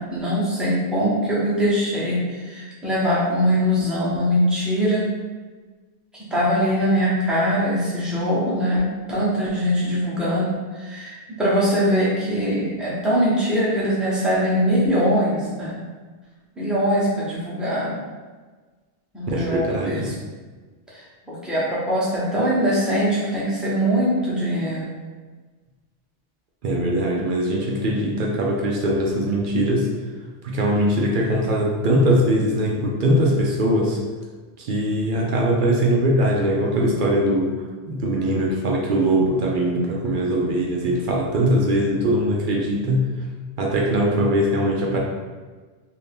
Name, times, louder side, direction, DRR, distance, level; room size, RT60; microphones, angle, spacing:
voice 1, 0.0-5.1 6.1-15.8 16.6-18.0 19.1-20.1 20.9-24.8, equal, ahead, -8 dB, 0.7 m, -22 dB
voice 2, 19.3-20.1 26.6-29.9 30.4-34.0 34.6-37.6 37.9-43.0 43.6-45.0, right 1 dB, 60° right, -2 dB, 0.6 m, -21 dB
2.7 x 2.7 x 3.4 m, 1.4 s
omnidirectional pair, 1.2 m